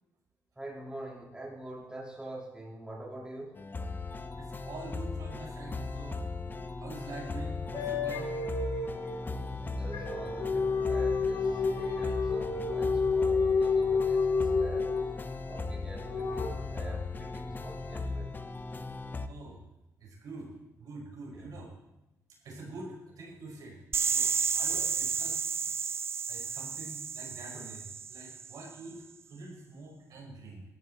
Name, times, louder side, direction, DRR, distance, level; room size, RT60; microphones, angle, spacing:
voice 1, 0.6-3.6 9.2-14.9 15.4-18.5 21.3-21.5 24.7-24.9, right 1 dB, 15° right, -3 dB, 4.0 m, -45 dB
sound 1, 3.6-19.3, left 3 dB, 30° left, 1.0 m, -38 dB
voice 2, 4.4-8.3 19.3-19.6 20.0-20.5 20.8-21.7 22.4-23.8 24.1-25.5 26.3-29.0 29.3-30.6, right 2 dB, 70° right, -1 dB, 5.4 m, -46 dB
sound 2, 7.7-15.3 16.0-16.5, left 4 dB, 75° left, 2.4 m, -29 dB
sound 3, 23.9-28.7, right 6 dB, 40° right, 0.4 m, -32 dB
17.0 x 13.5 x 4.1 m, 0.96 s
cardioid pair, 80°, 6 cm